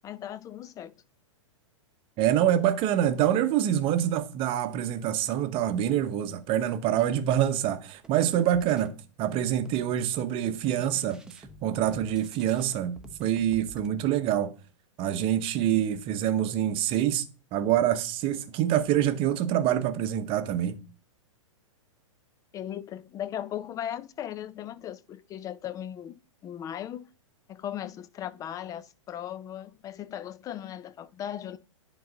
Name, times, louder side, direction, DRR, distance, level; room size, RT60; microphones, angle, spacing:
voice 1, 0.0-0.9 22.5-26.2 26.4-27.0 27.5-31.6, left 10 dB, 20° left, 0.5 m, -37 dB
voice 2, 2.2-11.2 11.6-14.5 15.0-17.2 17.5-20.8, right 11 dB, 35° right, 0.9 m, -26 dB
sound 1, 8.0-9.0 9.3-10.3 10.7-13.9, right 1 dB, 5° right, 0.8 m, -49 dB
10.5 x 3.9 x 3.9 m
hypercardioid pair, 125°, 17 cm